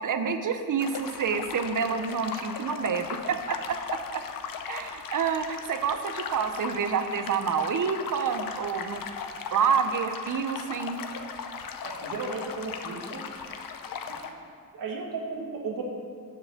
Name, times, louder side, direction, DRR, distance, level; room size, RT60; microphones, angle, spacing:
voice 1, 0.0-3.6 3.9-4.2 4.7-9.0 9.5-11.0, right 6 dB, 65° right, 8 dB, 0.7 m, -28 dB
sound 1, 0.8-14.3, left 6 dB, 80° left, 0.7 m, -38 dB
voice 2, 11.8-13.3 14.1-14.2 14.7-15.8, right 4 dB, 85° right, 1 dB, 1.4 m, -35 dB
10.0 x 4.8 x 7.1 m, 2.1 s
wide cardioid pair, 125°, 34 cm